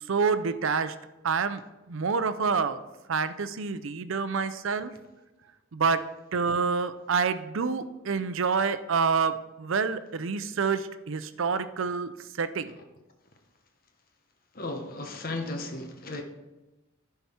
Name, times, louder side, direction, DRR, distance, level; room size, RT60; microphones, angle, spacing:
voice 1, 0.1-0.9 1.2-1.6 1.9-2.8 3.1-4.9 5.7-6.0 6.3-12.1 12.4-12.7, right 5 dB, 70° right, 0.5 m, -27 dB
voice 2, 14.5-16.2, left 2 dB, 45° left, 0.9 m, -35 dB
10.5 x 5.7 x 4.4 m
head